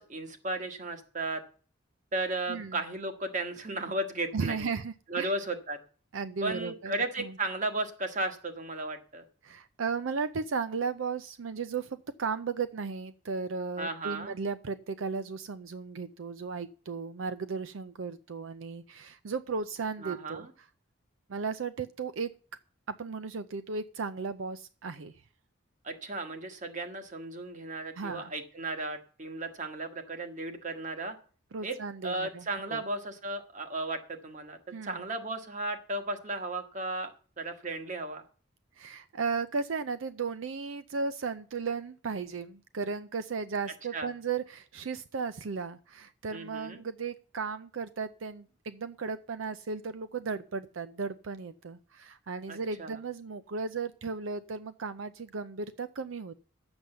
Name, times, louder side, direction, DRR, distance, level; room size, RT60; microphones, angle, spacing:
voice 1, 0.0-1.4 2.1-4.7 5.1-5.8 6.4-9.2 13.8-14.3 20.0-20.5 25.8-31.1 31.6-31.8 32.0-34.6 34.8-37.1 37.4-38.2 43.9-44.1 46.3-46.8 52.5-52.9, right 2 dB, 40° right, 6 dB, 1.5 m, -35 dB
voice 2, 2.5-2.8 4.3-5.3 6.1-7.3 9.4-20.7 21.3-22.3 22.9-25.1 28.0-28.3 31.5-32.8 34.7-35.0 38.8-56.4, right 5 dB, 80° right, 13 dB, 0.5 m, -35 dB
11.0 x 7.9 x 6.7 m, 0.41 s
head